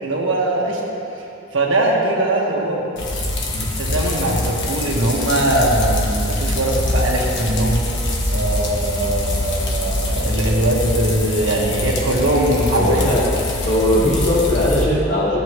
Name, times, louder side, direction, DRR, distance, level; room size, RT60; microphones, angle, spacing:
voice 1, 0.0-0.8 1.5-2.9 3.5-7.8 8.3-13.2, right 1 dB, 70° right, -3 dB, 1.7 m, -21 dB
sound 1, 3.0-14.8, left 1 dB, 65° left, 1.3 m, -23 dB
voice 2, 12.8-15.4, left 1 dB, 35° left, -9 dB, 1.8 m, -19 dB
15.5 x 8.2 x 3.2 m, 2.8 s
head